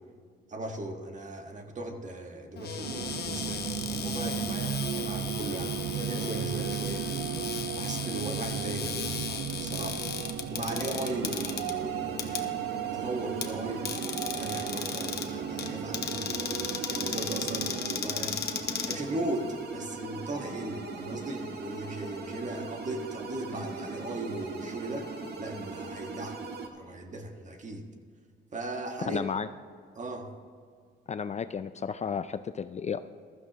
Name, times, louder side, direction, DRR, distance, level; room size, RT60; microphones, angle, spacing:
voice 1, 0.5-7.1 7.7-9.2 9.6-10.0 10.5-12.6 12.9-13.9 14.3-18.4 18.9-25.1 25.4-26.4 26.7-27.8 28.5-29.2 29.9-30.3, right 2 dB, 40° right, 4 dB, 1.6 m, -37 dB
Cupboard open or close, 2.6-19.6, left 7 dB, 55° left, 1.2 m, -36 dB
sound 1, 2.8-18.0, right 12 dB, 80° right, 0.4 m, -36 dB
sound 2, 10.7-26.7, right 3 dB, 55° right, 1.6 m, -40 dB
voice 2, 29.0-29.5 31.1-33.0, left 6 dB, 35° left, 12 dB, 0.4 m, -33 dB
15.0 x 13.5 x 3.0 m, 2.1 s
cardioid pair, 90°, 20 cm